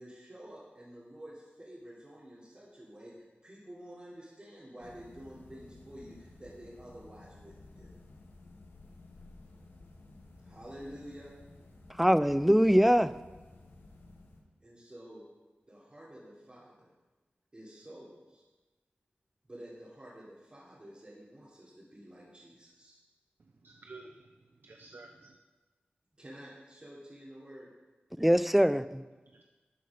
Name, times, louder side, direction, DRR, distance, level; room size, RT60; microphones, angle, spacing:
voice 1, 0.0-7.9 10.4-11.3 14.6-15.2 15.7-16.9 17.5-18.4 19.4-23.0 26.2-27.7, equal, 30° right, -9 dB, 3.3 m, -50 dB
sound 1, 4.8-14.4, left 2 dB, 85° left, 1.9 m, -54 dB
voice 2, 12.0-13.2 28.2-29.0, equal, 5° right, 15 dB, 0.5 m, -23 dB
voice 3, 23.4-25.4 29.3-29.4, right 3 dB, 65° right, 3 dB, 0.9 m, -52 dB
13.5 x 8.4 x 5.2 m, 1.2 s
wide cardioid pair, 65°, 4 cm